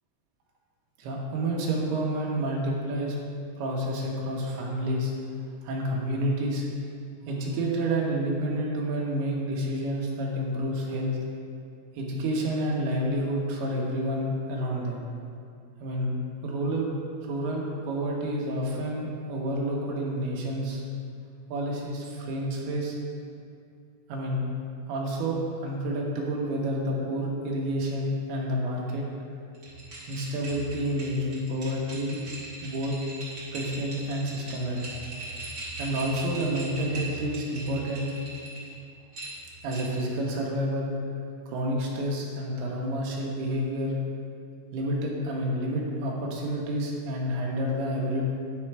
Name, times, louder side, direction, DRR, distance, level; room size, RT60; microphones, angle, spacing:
voice 1, 1.0-3.2 3.6-5.1 5.6-6.6 7.3-11.2 11.9-15.0 15.8-16.1 16.4-16.9 17.2-20.8 21.5-23.0 24.1-24.5 24.9-29.1 30.1-32.2 32.6-33.0 33.5-34.9 35.8-38.1 39.6-40.9 41.5-43.9 44.7-48.2, right 1 dB, 80° right, -2 dB, 3.1 m, -29 dB
sound 1, 29.5-38.7 39.1-40.1, right 2 dB, 40° right, 1.8 m, -40 dB
9.9 x 4.4 x 4.7 m, 2.4 s
omnidirectional pair, 4.6 m